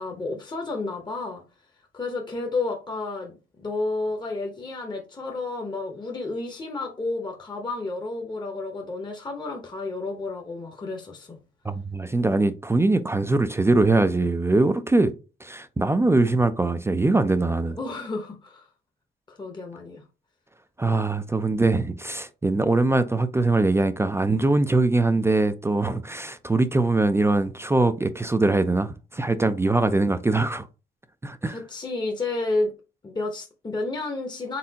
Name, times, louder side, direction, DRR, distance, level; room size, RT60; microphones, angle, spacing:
voice 1, 0.0-1.4 1.9-11.4 17.7-18.7 19.3-20.0 31.5-32.7 33.0-34.6, left 3 dB, 20° left, 0.9 m, -31 dB
voice 2, 11.6-15.1 15.4-17.8 20.8-30.7 31.2-31.6, right 2 dB, 15° right, 0.4 m, -22 dB
4.2 x 3.6 x 2.8 m
cardioid pair, 90°, 20 cm